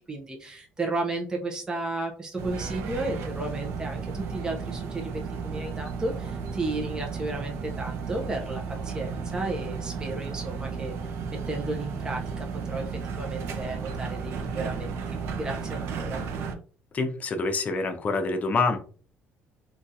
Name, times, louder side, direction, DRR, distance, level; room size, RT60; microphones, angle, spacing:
voice 1, 0.1-10.9 11.3-16.2, right 2 dB, 15° right, 1 dB, 0.6 m, -33 dB
sound 1, 2.4-16.5, right 5 dB, 75° right, 0.5 m, -34 dB
voice 2, 16.9-18.8, left 3 dB, 35° left, 6 dB, 0.6 m, -26 dB
3.6 x 2.3 x 2.7 m, 0.41 s
cardioid pair, 120°, 4 cm